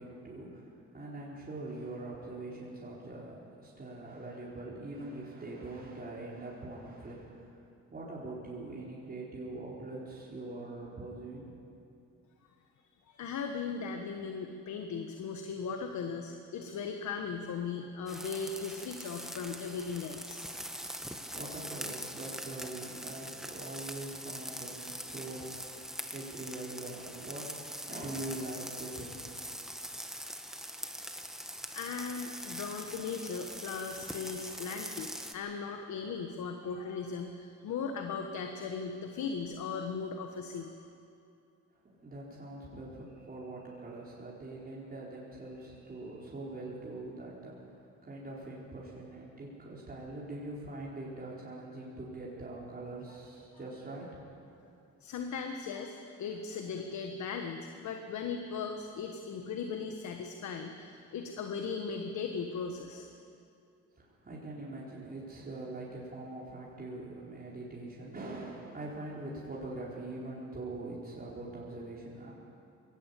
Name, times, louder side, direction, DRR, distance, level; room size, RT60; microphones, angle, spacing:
voice 1, 0.0-7.5 7.9-11.5 21.3-27.5 27.9-29.4 41.8-54.2 64.0-72.3, right 2 dB, 30° right, -6 dB, 4.8 m, -43 dB
voice 2, 13.1-20.4 30.6-30.8 31.7-40.9 55.0-63.1, left 5 dB, 70° left, 5 dB, 1.5 m, -38 dB
sound 1, 18.1-35.3, equal, ahead, 1.5 m, -43 dB
21.5 x 17.5 x 8.5 m, 2.6 s
cardioid pair, 90°, 30 cm